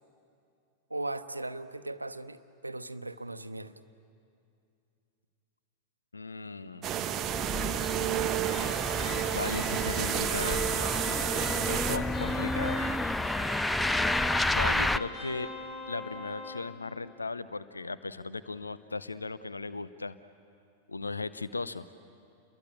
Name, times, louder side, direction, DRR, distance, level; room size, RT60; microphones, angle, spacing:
voice 1, 0.9-3.8, right 2 dB, 85° right, 11 dB, 0.9 m, -38 dB
voice 2, 6.1-7.1 9.3-10.6 11.7-12.9 14.5-15.5 15.9-20.2 20.9-21.8, left 3 dB, 80° left, 14 dB, 0.7 m, -37 dB
sound 1, 6.8-12.0, right 11 dB, 30° right, 1.0 m, -30 dB
sound 2, 7.2-15.0, left 2 dB, 5° left, 0.6 m, -31 dB
sound 3, 8.5-16.7, left 2 dB, 40° left, 5.3 m, -41 dB
29.5 x 21.5 x 8.8 m, 2.5 s
figure-of-eight pair, 90°, 0 cm